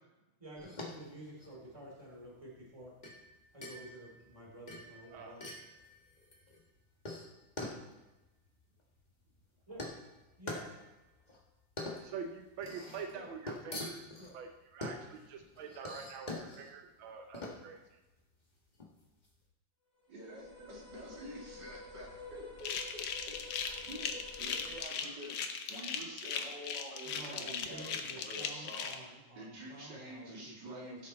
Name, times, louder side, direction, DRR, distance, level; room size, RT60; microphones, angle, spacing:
voice 1, 0.4-2.9 3.5-5.5 9.7-9.8 10.4-10.6 13.1-13.3 14.2-14.4 27.0-31.0, right 1 dB, 15° right, -3 dB, 2.8 m, -50 dB
sound 1, 0.6-19.4, left 2 dB, 25° left, 1.4 m, -46 dB
voice 2, 12.0-14.1 14.3-18.0, right 6 dB, 85° right, 5 dB, 1.6 m, -45 dB
sound 2, 20.0-24.8, left 3 dB, 40° left, 4.6 m, -50 dB
voice 3, 20.1-31.1, equal, 60° right, -3 dB, 2.8 m, -48 dB
sound 3, 22.6-28.9, left 7 dB, 70° left, 1.5 m, -38 dB
15.5 x 6.7 x 4.1 m, 1.0 s
omnidirectional pair, 2.2 m